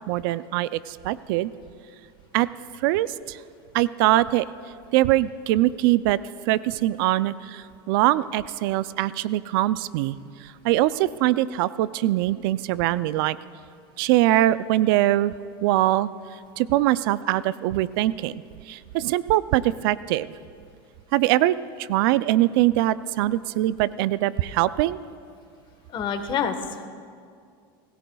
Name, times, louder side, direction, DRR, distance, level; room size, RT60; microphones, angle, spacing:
voice 1, 0.1-1.5 2.3-2.5 2.8-3.4 3.7-4.5 4.9-6.2 6.5-10.2 10.6-13.4 14.0-15.3 15.6-16.1 16.6-18.4 18.7-20.3 21.1-25.0, right 15 dB, 70° right, 17 dB, 0.4 m, -22 dB
voice 2, 25.9-26.9, left 7 dB, 40° left, 7 dB, 1.3 m, -28 dB
25.0 x 16.0 x 2.3 m, 2.2 s
supercardioid pair, 110°, 12 cm